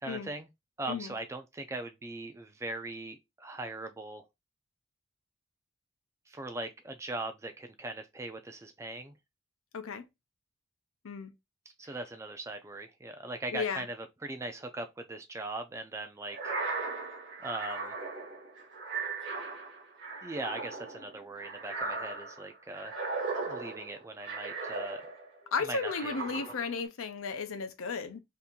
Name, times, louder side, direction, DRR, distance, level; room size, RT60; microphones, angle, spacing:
voice 1, 0.0-0.5 0.8-4.3 6.3-9.2 11.8-16.5 17.4-17.9 20.2-23.0 23.4-25.0 25.4-26.5, right 2 dB, 15° right, 0.3 m, -40 dB
voice 2, 9.7-10.0 11.0-11.3 13.5-13.8 25.5-28.2, left 5 dB, 85° left, 0.5 m, -34 dB
sound 1, 16.3-25.4 25.8-26.8, right 3 dB, 55° right, 1.1 m, -38 dB
2.8 x 2.5 x 3.6 m
head